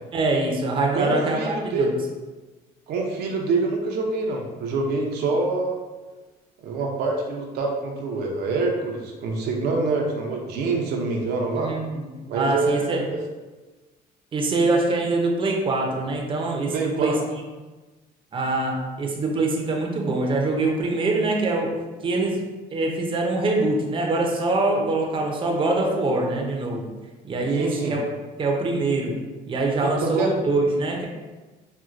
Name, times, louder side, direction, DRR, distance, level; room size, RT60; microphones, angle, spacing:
voice 1, 0.1-2.0 11.6-12.1 12.3-13.0 14.3-17.4 18.3-21.7 22.0-22.4 22.7-26.9 27.2-28.0 28.4-29.1 29.4-31.1, right 2 dB, 30° right, 0 dB, 0.6 m, -24 dB
voice 2, 0.9-1.9 2.9-5.8 6.6-11.7 12.3-13.0 16.7-17.2 27.5-27.9 29.8-30.3, right 3 dB, 75° right, 0 dB, 0.6 m, -26 dB
4.3 x 2.2 x 2.5 m, 1.2 s
cardioid pair, 110°, 17 cm